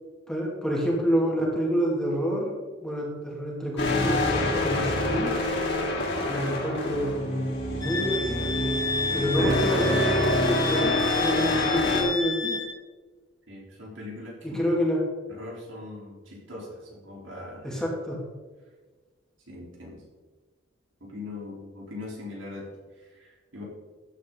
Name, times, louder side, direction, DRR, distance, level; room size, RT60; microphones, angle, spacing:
voice 1, 0.3-5.4 6.3-7.3 7.7-8.5 9.1-12.6 14.4-15.0 17.6-18.2, equal, 5° left, -3 dB, 2.7 m, -28 dB
sound 1, 3.8-12.0, left 2 dB, 60° left, 3.4 m, -26 dB
Wind instrument woodwind instrument, 7.8-12.7, left 4 dB, 20° left, 2.2 m, -31 dB
voice 2, 13.5-14.6 15.3-17.8 19.5-20.0 21.0-23.6, left 2 dB, 70° right, -3 dB, 4.0 m, -41 dB
15.0 x 9.7 x 4.0 m, 1.4 s
head